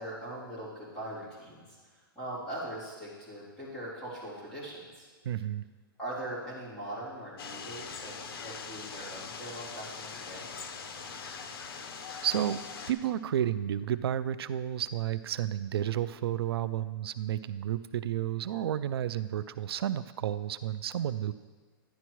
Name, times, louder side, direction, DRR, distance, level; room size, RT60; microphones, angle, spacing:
voice 1, 0.0-1.8 2.1-5.1 6.0-10.5, right 1 dB, 5° left, -12 dB, 3.0 m, -41 dB
voice 2, 5.2-5.6 12.2-12.6 12.9-21.3, right 11 dB, 85° right, 14 dB, 0.4 m, -31 dB
sound 1, 7.4-12.9, left 5 dB, 80° left, 0.9 m, -42 dB
11.0 x 10.5 x 3.1 m, 1.5 s
hypercardioid pair, 175°, 12 cm